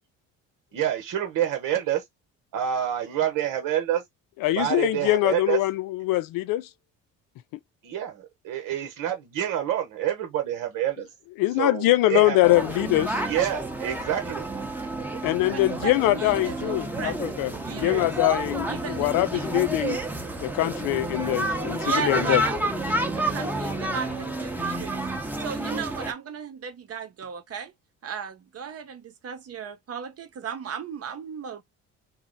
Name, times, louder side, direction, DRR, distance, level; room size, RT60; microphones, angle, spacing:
voice 1, 0.7-2.0 2.5-4.0 4.5-5.6 7.8-11.1 11.6-12.4 13.2-14.5, right 10 dB, 70° right, 0.9 m, -27 dB
voice 2, 4.4-6.7 11.4-13.2 15.2-17.5 17.8-20.0 20.4-22.4, left 17 dB, 70° left, 0.5 m, -23 dB
sound 1, 12.4-26.1, right 1 dB, 5° right, 0.8 m, -30 dB
voice 3, 15.5-18.1 18.7-19.7 21.8-25.0 25.4-27.7 28.0-31.6, right 6 dB, 45° right, 0.9 m, -36 dB
2.8 x 2.0 x 3.7 m
supercardioid pair, 70°, 34 cm